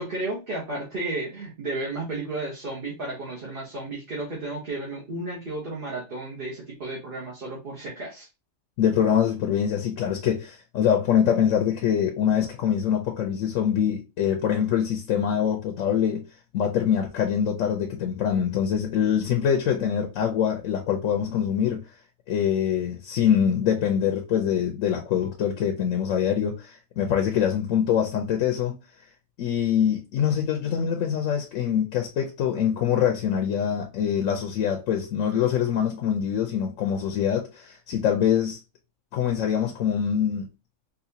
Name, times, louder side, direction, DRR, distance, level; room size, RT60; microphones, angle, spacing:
voice 1, 0.0-8.3, right 2 dB, 45° right, 1.1 m, -33 dB
voice 2, 8.8-16.2 16.5-21.8 22.3-28.8 29.4-38.6 39.1-40.5, left 8 dB, 75° left, 1.0 m, -24 dB
4.0 x 2.6 x 2.7 m
omnidirectional pair, 1.4 m